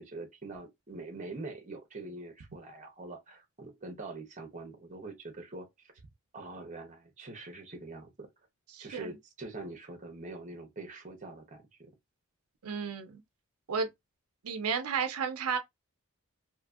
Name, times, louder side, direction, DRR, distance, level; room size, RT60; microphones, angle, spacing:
voice 1, 0.0-5.7 6.3-8.3 8.8-11.9, right 2 dB, 35° right, 0.7 m, -44 dB
voice 2, 8.7-9.1 12.6-13.2 13.7-13.9 14.4-15.6, right 6 dB, 85° right, 0.5 m, -32 dB
2.7 x 2.6 x 2.3 m
head